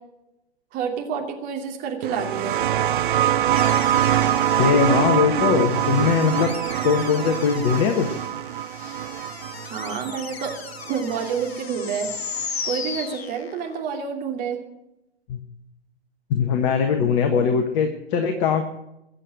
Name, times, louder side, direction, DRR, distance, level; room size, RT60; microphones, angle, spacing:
voice 1, 0.7-2.6 9.6-10.5 10.9-12.1 12.6-14.6, right 6 dB, 25° right, 2 dB, 2.6 m, -28 dB
sound 1, 2.0-11.3 12.4-12.5, right 11 dB, 50° right, 0.5 m, -24 dB
sound 2, 3.6-13.8, left 6 dB, 65° left, 1.3 m, -37 dB
voice 2, 4.6-6.5 6.8-8.1 8.8-8.9 15.3-15.4 16.3-18.6, left 6 dB, 30° left, 6 dB, 1.3 m, -21 dB
22.0 x 7.8 x 6.5 m, 0.90 s
figure-of-eight pair, 115°, 33 cm